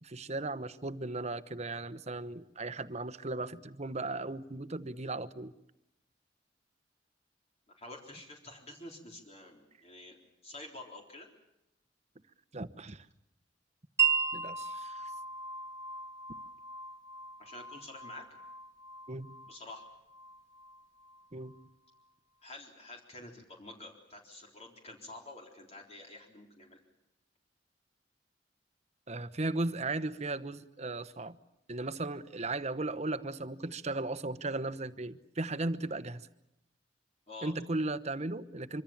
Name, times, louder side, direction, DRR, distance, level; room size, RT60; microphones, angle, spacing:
voice 1, 0.0-5.5 12.5-13.1 14.3-15.1 19.1-19.3 21.3-21.6 29.1-31.4 31.7-36.3 37.4-38.8, right 2 dB, 40° right, 14 dB, 1.1 m, -36 dB
voice 2, 7.8-10.2 10.4-11.3 17.4-18.3 19.5-19.9 22.4-26.8 37.3-37.5, left 2 dB, 35° left, 1 dB, 3.9 m, -48 dB
Wind chime, 14.0-21.6, right 7 dB, 15° right, 1.6 m, -36 dB
25.0 x 25.0 x 7.3 m, 0.88 s
head